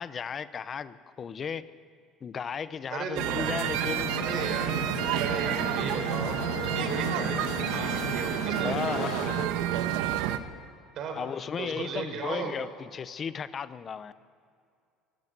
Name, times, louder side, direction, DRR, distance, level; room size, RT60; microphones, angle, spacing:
voice 1, 0.0-1.7 2.2-4.1 8.6-9.1 11.2-14.1, left 7 dB, 30° left, 14 dB, 0.7 m, -35 dB
voice 2, 2.9-3.5 4.2-4.7 5.2-6.4 6.6-9.1 11.0-11.2 11.6-12.5, right 5 dB, 45° right, 4 dB, 4.4 m, -36 dB
sound 1, 3.2-10.4, right 11 dB, 85° right, 1.2 m, -29 dB
sound 2, 3.7-9.5, left 15 dB, 70° left, 0.6 m, -37 dB
24.0 x 13.5 x 8.0 m, 2.4 s
cardioid pair, 150°, 0 cm